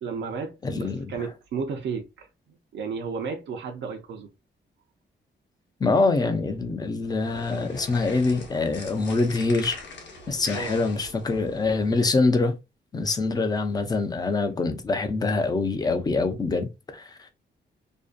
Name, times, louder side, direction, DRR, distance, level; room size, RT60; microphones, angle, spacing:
voice 1, 0.0-2.3 2.7-4.3 10.5-10.8 13.2-13.5, right 5 dB, 70° right, 0.5 m, -33 dB
voice 2, 0.6-1.3 5.8-9.8 10.3-12.6 12.9-17.3, left 3 dB, 20° left, 0.3 m, -25 dB
sound 1, 7.0-12.0, left 2 dB, 70° left, 0.7 m, -42 dB
2.5 x 2.1 x 2.4 m
wide cardioid pair, 170°, 19 cm